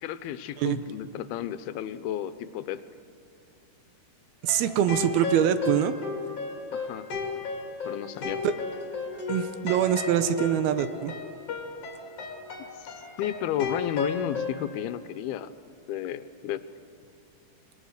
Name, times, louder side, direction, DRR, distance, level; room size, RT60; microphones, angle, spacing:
voice 1, 0.0-2.8 6.7-7.1 7.9-8.4 12.8-15.5 15.9-16.7, left 11 dB, 80° left, 13 dB, 2.6 m, -32 dB
sound 1, 4.4-14.6, left 4 dB, 45° left, 2.8 m, -34 dB
voice 2, 4.4-5.9 8.4-8.6 9.3-11.1, right 10 dB, 80° right, 11 dB, 2.6 m, -24 dB
26.5 x 21.5 x 6.6 m, 2.4 s
omnidirectional pair, 4.6 m